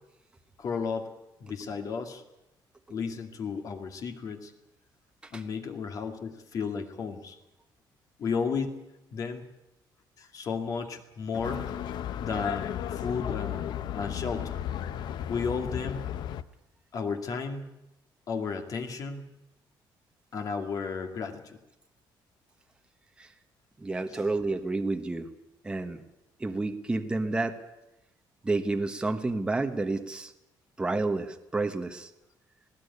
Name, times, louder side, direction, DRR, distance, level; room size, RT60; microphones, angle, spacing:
voice 1, 0.6-1.1 1.4-2.2 2.9-4.5 5.3-7.4 8.2-8.8 9.1-9.4 10.2-11.8 12.2-14.6 15.3-16.1 16.9-17.7 18.3-19.3 20.3-21.6 24.1-24.2, left 5 dB, 45° left, 6 dB, 2.4 m, -33 dB
sound 1, 11.4-16.4, left 10 dB, 60° left, 0.9 m, -34 dB
voice 2, 23.8-25.3 25.6-26.0 26.4-27.6 28.4-30.3 30.8-32.1, right 3 dB, 10° right, 6 dB, 1.2 m, -30 dB
19.5 x 16.5 x 9.7 m, 0.93 s
cardioid pair, 160°, 8 cm